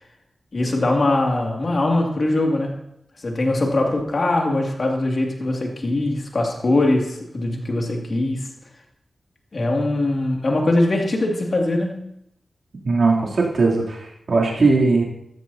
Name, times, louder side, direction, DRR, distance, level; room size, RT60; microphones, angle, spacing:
voice 1, 0.5-2.8 3.2-8.5 9.5-12.2, left 2 dB, 55° left, 0 dB, 2.4 m, -21 dB
voice 2, 12.8-14.0 14.3-15.0, right 3 dB, 70° right, -4 dB, 3.1 m, -18 dB
14.5 x 13.0 x 2.8 m, 0.79 s
cardioid pair, 70°, 0 cm